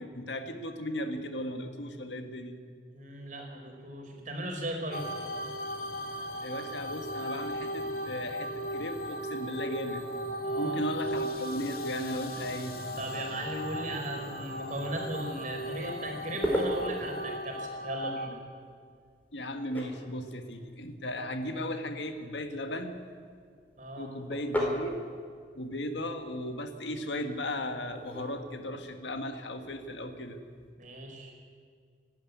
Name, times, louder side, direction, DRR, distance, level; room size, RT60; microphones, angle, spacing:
voice 1, 0.0-2.6 6.4-10.0 10.5-12.8 19.3-23.0 24.0-25.0 25.6-30.4, left 1 dB, 85° left, 6 dB, 1.7 m, -36 dB
voice 2, 2.9-5.0 10.4-10.8 13.0-18.4 23.8-24.1 30.8-31.3, right 1 dB, 45° right, 1 dB, 4.8 m, -37 dB
sound 1, 4.9-18.3, equal, 55° left, 2.1 m, -37 dB
sound 2, 16.2-30.7, equal, 10° left, 4.0 m, -40 dB
28.0 x 12.0 x 9.5 m, 2.1 s
head